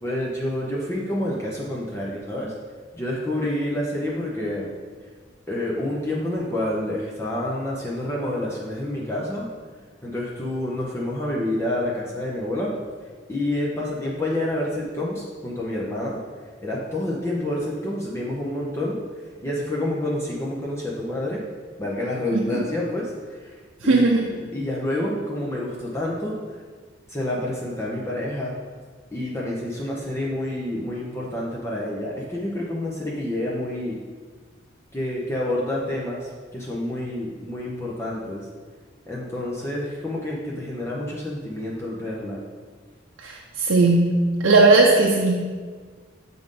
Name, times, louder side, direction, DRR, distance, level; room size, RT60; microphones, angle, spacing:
voice 1, 0.0-2.5 2.9-4.7 5.5-9.5 10.0-12.7 13.3-16.2 16.6-19.0 19.4-21.4 21.8-23.1 23.8-26.4 27.1-28.5 29.1-34.0 34.9-38.4 39.1-42.4, left 1 dB, 15° left, -4 dB, 0.7 m, -28 dB
voice 2, 22.3-22.6 23.8-24.3 43.2-45.4, right 3 dB, 85° right, -1 dB, 0.6 m, -18 dB
7.8 x 3.8 x 3.7 m, 1.5 s
head